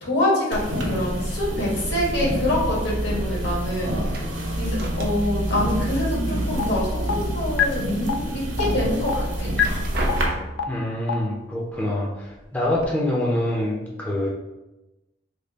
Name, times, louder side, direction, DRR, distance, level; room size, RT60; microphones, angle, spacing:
voice 1, 0.0-4.0 4.6-9.5, left 1 dB, 70° left, -4 dB, 1.2 m, -25 dB
sound 1, 0.5-10.2, right 1 dB, 80° right, 0.8 m, -27 dB
sound 2, 4.0-5.5 5.8-6.8 7.2-8.0 8.5-8.6 9.4-10.8 11.7-11.8 12.2-12.8, right 1 dB, 55° right, 0.5 m, -35 dB
sound 3, 6.6-6.7 7.1-7.2 7.6-7.7 8.1-8.2 8.6-8.7 9.1-9.2 9.6-9.7 10.1-10.2 10.6-10.7 11.1-11.2, left 10 dB, 85° left, 0.3 m, -21 dB
voice 2, 10.7-14.3, left 1 dB, 10° left, -4 dB, 0.5 m, -25 dB
3.3 x 2.3 x 3.8 m, 1.0 s
head